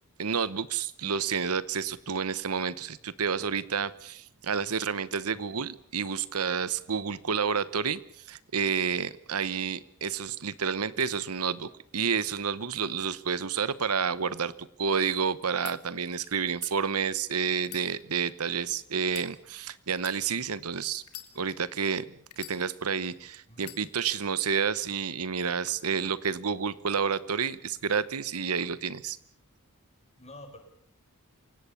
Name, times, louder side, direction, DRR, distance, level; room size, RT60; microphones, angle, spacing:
voice 1, 0.2-8.0 8.3-14.5 14.8-21.0 21.3-22.0 22.4-29.2, right 6 dB, 75° right, 17 dB, 1.0 m, -30 dB
voice 2, 5.3-5.6 23.5-23.7 30.2-30.6, left 1 dB, 30° left, 5 dB, 5.5 m, -49 dB
sound 1, 15.6-15.8 16.5-16.7 17.6-18.5 19.0-19.3 19.9-20.2 21.0-21.7 22.3-23.0 23.6-23.8, left 14 dB, 90° left, 2.7 m, -45 dB
27.5 x 17.5 x 7.1 m, 0.63 s
head